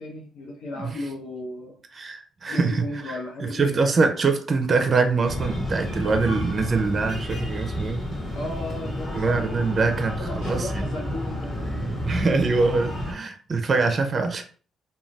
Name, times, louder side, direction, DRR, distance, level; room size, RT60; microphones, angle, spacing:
voice 1, 0.0-1.8 2.5-3.9 8.3-11.5, left 1 dB, 90° left, -3 dB, 0.8 m, -35 dB
voice 2, 1.9-3.2 3.4-8.0 9.1-10.2 10.5-10.9 12.1-14.4, right 4 dB, 40° right, 6 dB, 0.5 m, -23 dB
Breathing, 5.2-13.1, left 1 dB, 35° left, 1.3 m, -30 dB
2.5 x 2.3 x 3.2 m, 0.41 s
cardioid pair, 90°, 0 cm